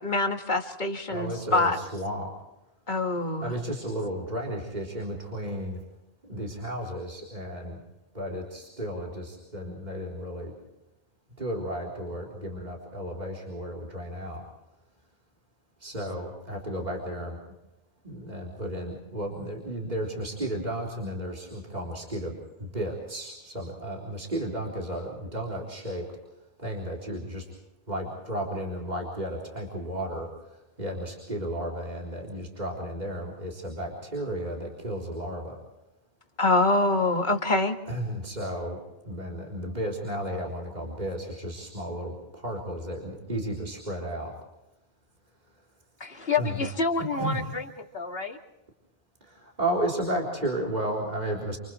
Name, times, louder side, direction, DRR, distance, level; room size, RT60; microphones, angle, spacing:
voice 1, 0.0-1.8 2.9-3.5 36.4-37.7, left 2 dB, 45° left, 4 dB, 2.1 m, -25 dB
voice 2, 1.1-2.3 3.4-5.8 6.2-7.8 8.1-10.5 11.4-14.4 15.8-17.4 18.0-26.1 26.6-27.5 27.9-30.3 30.8-35.6 37.9-38.8 39.0-44.3 46.4-46.6 47.2-47.4 49.2-51.6, right 1 dB, 45° right, -2 dB, 4.1 m, -33 dB
voice 3, 46.0-48.4, left 4 dB, 70° left, 2 dB, 2.8 m, -29 dB
29.0 x 28.5 x 3.2 m, 0.96 s
omnidirectional pair, 1.1 m